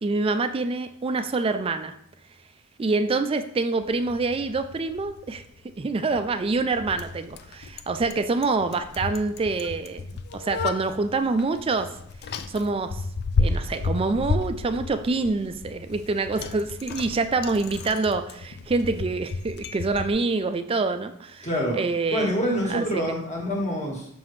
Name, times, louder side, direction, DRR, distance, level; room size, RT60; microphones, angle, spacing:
voice 1, 0.0-1.9 2.8-5.4 5.8-11.9 12.5-13.0 13.4-21.5 21.7-22.3 22.7-23.1, right 3 dB, 25° right, 9 dB, 0.3 m, -26 dB
Bicycle, 3.8-20.1, left 4 dB, 50° left, 0.4 m, -33 dB
voice 2, 21.4-21.8 22.1-24.1, equal, 35° left, -1 dB, 1.5 m, -26 dB
6.0 x 5.7 x 3.1 m, 0.71 s
head